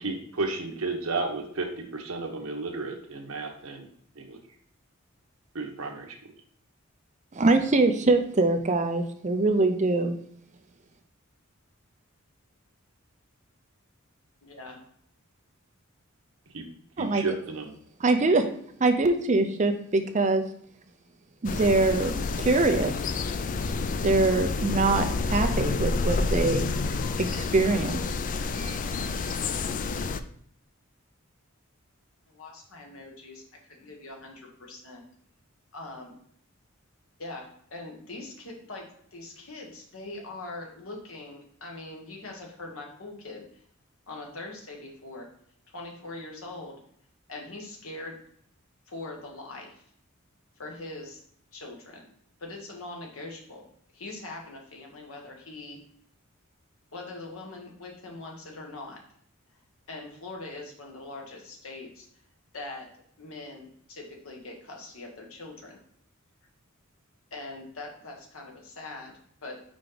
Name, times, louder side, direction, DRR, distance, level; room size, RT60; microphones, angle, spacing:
voice 1, 0.0-3.9 4.1-4.4 5.5-6.1 16.5-16.6 17.0-17.7, right 3 dB, 80° right, 2 dB, 1.1 m, -32 dB
voice 2, 7.3-10.2 17.0-17.2 18.0-18.4 18.8-20.4 21.4-23.0 24.0-26.7 27.2-28.0 28.6-29.4, right 3 dB, 35° right, 7 dB, 0.6 m, -24 dB
voice 3, 14.4-14.8 32.3-35.0 35.7-36.2 37.2-43.6 44.1-45.3 45.7-46.8 47.3-48.2 48.9-49.8 50.6-51.2 51.5-52.1 52.4-53.6 53.9-55.8 56.9-59.0 59.9-62.1 62.5-62.9 63.2-65.8 67.3-69.6, left 2 dB, 75° left, 0 dB, 1.3 m, -42 dB
sound 1, 21.4-30.2, left 3 dB, 40° left, 0.3 m, -29 dB
5.2 x 4.7 x 3.8 m, 0.64 s
head